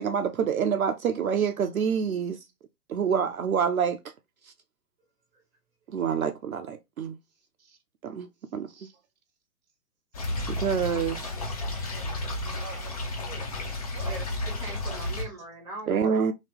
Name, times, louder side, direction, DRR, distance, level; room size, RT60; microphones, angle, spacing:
voice 1, 0.0-2.4 2.9-4.0 5.9-7.1 8.0-8.3 8.5-8.9 10.5-11.2 15.9-16.3, right 7 dB, 65° right, 0.5 m, -27 dB
sound 1, 10.1-15.3, left 2 dB, 25° left, 0.5 m, -32 dB
voice 2, 11.9-14.2, right 6 dB, 30° right, 0.8 m, -46 dB
voice 3, 14.0-16.2, right 2 dB, 5° right, 1.1 m, -40 dB
2.8 x 2.7 x 3.3 m
figure-of-eight pair, 120°, 47 cm